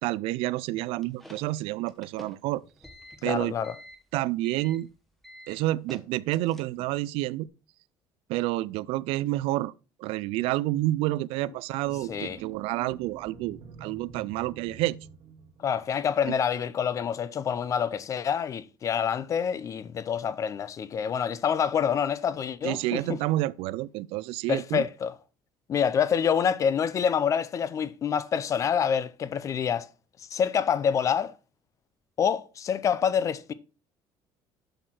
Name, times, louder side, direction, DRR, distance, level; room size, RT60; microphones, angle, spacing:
voice 1, 0.0-2.6 3.2-3.5 4.1-4.9 5.5-7.5 8.3-9.7 10.0-15.0 16.3-16.4 22.6-24.8, right 17 dB, 80° right, 0.4 m, -29 dB
sound 1, 0.8-7.0, equal, ahead, 1.1 m, -49 dB
voice 2, 3.2-3.7 12.1-12.4 15.6-23.2 24.5-25.1 25.7-29.9 30.3-31.3 32.2-33.5, left 7 dB, 35° left, 0.6 m, -27 dB
sound 2, 11.8-16.1, right 6 dB, 50° right, 1.2 m, -47 dB
7.8 x 6.4 x 4.4 m
cardioid pair, 150°, 10 cm